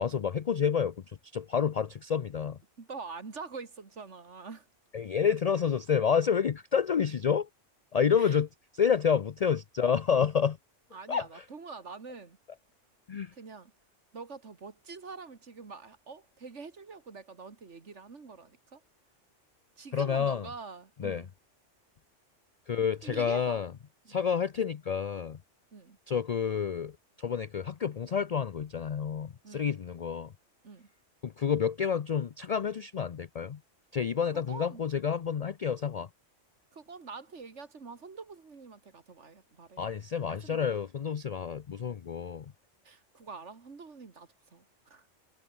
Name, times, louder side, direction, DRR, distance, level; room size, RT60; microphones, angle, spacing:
voice 1, 0.0-2.6 4.9-7.5 7.9-8.5 8.8-10.6 11.1-11.3 13.1-13.3 19.9-20.5 21.0-21.2 22.7-23.7 24.1-25.4 26.1-30.3 31.2-33.6 33.9-36.1 39.8-42.5, left 7 dB, 50° left, 0.5 m, -29 dB
voice 2, 2.8-4.7 8.2-8.4 10.9-12.4 13.3-13.7 14.1-18.8 19.8-21.3 23.0-23.6 24.0-24.2 25.7-26.0 29.4-29.7 30.6-30.9 34.3-34.8 36.7-39.8 40.3-40.8 42.8-45.1, right 4 dB, 70° right, 2.4 m, -45 dB
omnidirectional pair, 1.2 m